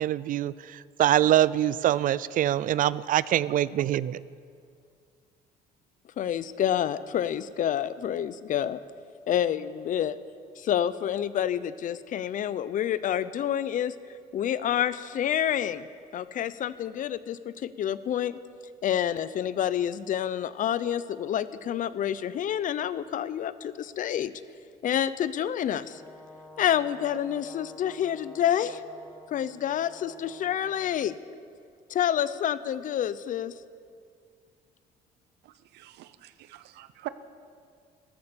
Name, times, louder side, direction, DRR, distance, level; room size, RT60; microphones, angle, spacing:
voice 1, 0.0-4.2, right 12 dB, 55° right, 19 dB, 0.4 m, -24 dB
voice 2, 6.2-8.8 9.3-10.2 10.6-13.9 14.3-15.9 16.1-18.4 18.8-24.3 24.8-26.0 26.6-28.8 29.3-31.1 31.9-33.5, left 10 dB, 50° left, 15 dB, 0.6 m, -28 dB
Brass instrument, 25.9-31.1, left 2 dB, ahead, 1.8 m, -50 dB
voice 3, 35.4-37.1, right 17 dB, 80° right, 14 dB, 0.7 m, -43 dB
13.5 x 13.0 x 7.0 m, 2.3 s
cardioid pair, 110°, 17 cm